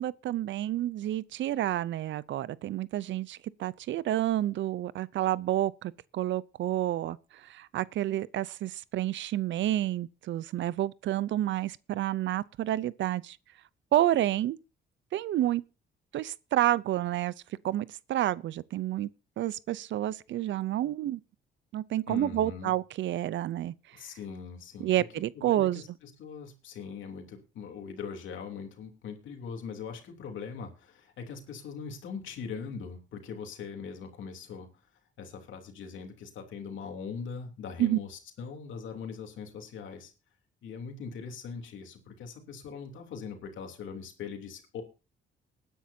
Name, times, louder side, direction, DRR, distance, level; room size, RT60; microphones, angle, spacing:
voice 1, 0.0-13.4 13.9-14.6 15.1-15.6 16.1-17.3 17.6-19.1 19.4-21.2 21.7-23.7 24.8-25.8 37.8-38.0, right 13 dB, 70° right, 0.6 m, -29 dB
voice 2, 22.1-22.7 23.9-34.7 35.2-40.1 40.6-44.8, left 6 dB, 75° left, 3.1 m, -41 dB
20.0 x 10.0 x 2.7 m
cardioid pair, 90°, 20 cm